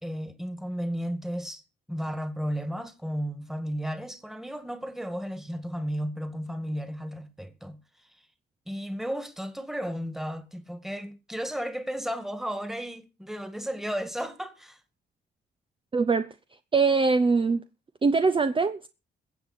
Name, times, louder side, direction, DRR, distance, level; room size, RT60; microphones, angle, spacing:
voice 1, 0.0-1.6 1.9-7.8 8.7-14.8, equal, ahead, 2.0 m, -34 dB
voice 2, 15.9-16.3 16.7-17.6 18.0-18.9, right 4 dB, 25° right, 0.8 m, -22 dB
22.0 x 7.8 x 4.3 m
cardioid pair, 90°, 20 cm